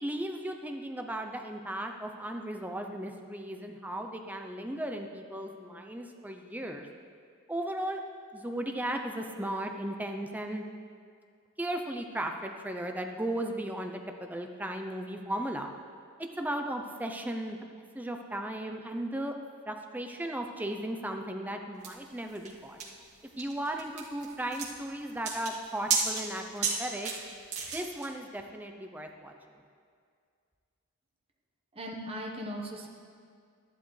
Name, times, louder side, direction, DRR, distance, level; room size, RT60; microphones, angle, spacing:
voice 1, 0.0-6.9 7.5-8.0 8.3-10.6 11.6-15.7 16.4-17.6 17.9-19.3 19.7-22.8 23.4-27.1 27.7-29.3, right 1 dB, 10° right, 4 dB, 0.6 m, -36 dB
sound 1, 21.8-28.1, right 5 dB, 85° right, 2.0 m, -34 dB
voice 2, 31.7-32.9, equal, 25° right, -1 dB, 1.2 m, -38 dB
12.5 x 11.5 x 3.3 m, 2.2 s
head